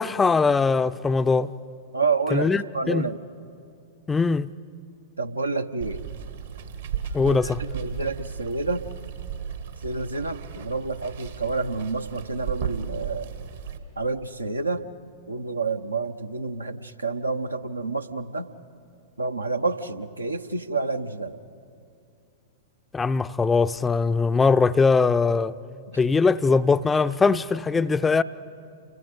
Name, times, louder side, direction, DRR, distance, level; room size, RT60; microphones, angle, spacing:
voice 1, 0.0-1.5 2.3-3.1 4.1-4.5 7.1-7.6 22.9-25.5 26.0-28.2, left 4 dB, 15° left, 0.4 m, -21 dB
voice 2, 1.9-3.2 5.2-6.0 7.2-8.8 9.8-13.3 14.0-14.8 15.3-18.5 19.2-21.4, right 3 dB, 85° right, 0.8 m, -29 dB
Water, 5.8-13.8, right 8 dB, 65° right, 1.6 m, -35 dB
29.0 x 22.5 x 5.1 m
figure-of-eight pair, 100°, 0 cm